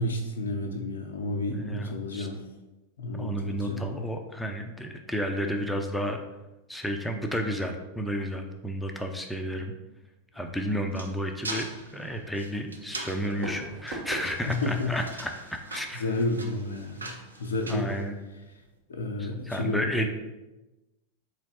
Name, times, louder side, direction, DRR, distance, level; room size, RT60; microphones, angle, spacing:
voice 1, 0.0-2.4 3.0-4.1 14.5-15.0 15.9-17.1 17.4-17.9 18.9-19.9, left 2 dB, 75° left, 2 dB, 0.5 m, -31 dB
voice 2, 1.5-2.3 3.1-6.2 6.7-9.7 10.3-16.1 17.7-18.1 19.2-20.1, equal, 5° left, 3 dB, 0.5 m, -32 dB
sound 1, 10.4-18.6, right 2 dB, 90° right, 0.5 m, -42 dB
Fireworks, 13.0-18.0, right 1 dB, 60° right, 1.3 m, -43 dB
4.0 x 3.1 x 4.3 m, 1.1 s
figure-of-eight pair, 95°, 0 cm